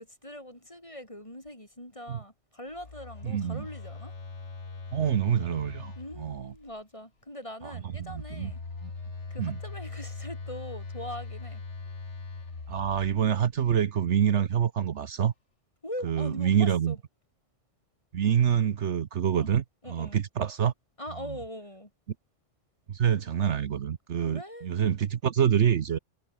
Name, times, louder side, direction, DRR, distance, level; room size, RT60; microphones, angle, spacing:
voice 1, 0.0-4.1 6.0-8.6 9.3-11.6 15.8-17.0 19.3-19.5 19.8-20.2 21.0-21.9 24.2-24.7, left 1 dB, 25° left, 6.0 m, -41 dB
Telephone, 2.7-6.7 7.9-13.6, left 4 dB, 65° left, 2.8 m, -41 dB
voice 2, 3.2-3.6 4.9-6.5 7.6-8.5 8.8-8.9 9.4-9.6 12.7-15.3 16.0-17.0 18.1-19.6 19.9-20.7 22.9-26.0, right 8 dB, 65° right, 1.2 m, -26 dB
omnidirectional pair, 1.3 m